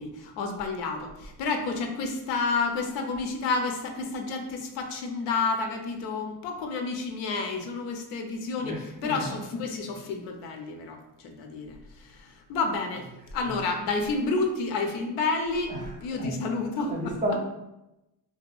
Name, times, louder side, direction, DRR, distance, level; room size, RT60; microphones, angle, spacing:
voice 1, 0.0-13.1 13.3-17.4, left 3 dB, 90° left, 4 dB, 0.5 m, -30 dB
voice 2, 8.6-9.4 12.9-13.0 15.2-15.3 15.7-15.9 16.8-17.4, equal, 20° right, -2 dB, 0.6 m, -33 dB
2.8 x 2.2 x 2.3 m, 0.93 s
cardioid pair, 115°, 41 cm